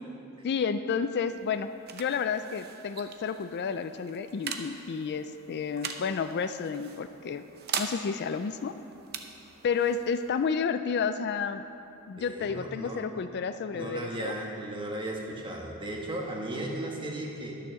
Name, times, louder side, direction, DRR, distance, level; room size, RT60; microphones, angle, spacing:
voice 1, 0.4-7.4 7.7-8.7 9.6-11.6 12.1-14.4, left 6 dB, 50° left, 10 dB, 0.4 m, -31 dB
sound 1, 1.1-12.4, right 6 dB, 45° right, 0.7 m, -42 dB
voice 2, 12.2-13.0 13.7-17.6, right 1 dB, 20° right, -1 dB, 1.4 m, -36 dB
11.5 x 7.0 x 6.4 m, 2.7 s
head